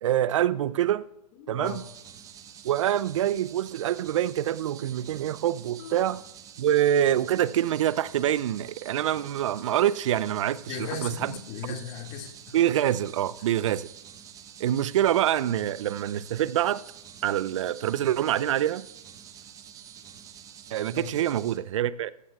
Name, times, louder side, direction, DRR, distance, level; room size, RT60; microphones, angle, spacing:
voice 1, 0.0-1.0 1.5-1.8 2.6-6.2 6.6-11.3 12.5-13.9 14.6-16.8 17.2-18.9 20.7-22.1, right 11 dB, 50° right, 0.6 m, -25 dB
voice 2, 1.4-1.8 5.8-6.1 10.6-12.6 20.9-21.1, left 6 dB, 30° left, 2.2 m, -37 dB
sound 1, 1.6-21.6, right 9 dB, 15° right, 0.8 m, -48 dB
17.0 x 15.0 x 2.4 m
figure-of-eight pair, 125°, 21 cm